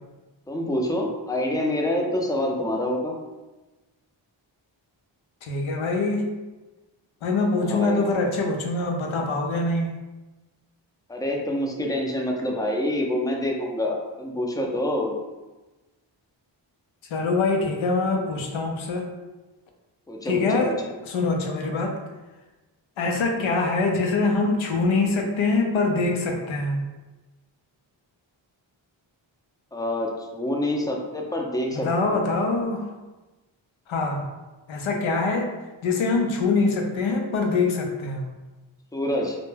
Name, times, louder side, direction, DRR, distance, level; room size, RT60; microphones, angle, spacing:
voice 1, 0.5-3.1 7.6-8.0 11.1-15.2 20.1-20.7 21.7-21.8 29.7-32.3 38.9-39.4, left 1 dB, 10° left, 0 dB, 0.4 m, -27 dB
voice 2, 5.4-6.3 7.2-9.9 17.1-19.1 20.3-20.8 21.1-22.0 23.0-26.8 31.7-32.9 33.9-34.2 34.7-35.5 35.8-38.3, left 3 dB, 80° left, 2 dB, 0.6 m, -24 dB
2.2 x 2.1 x 3.2 m, 1.1 s
cardioid pair, 55°, 47 cm